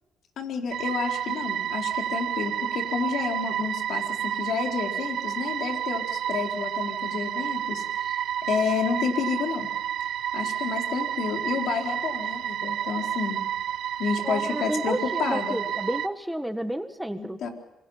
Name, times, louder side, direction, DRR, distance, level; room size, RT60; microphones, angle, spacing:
voice 1, 0.4-8.2 8.5-9.7 10.3-13.4 14.0-15.6 17.2-17.5, left 6 dB, 70° left, 3 dB, 4.1 m, -30 dB
sound 1, 0.7-16.1, right 10 dB, 75° right, 0.8 m, -30 dB
voice 2, 14.2-17.4, right 1 dB, 5° right, 8 dB, 1.5 m, -31 dB
27.5 x 24.0 x 5.7 m, 1.0 s
cardioid pair, 90°, 0 cm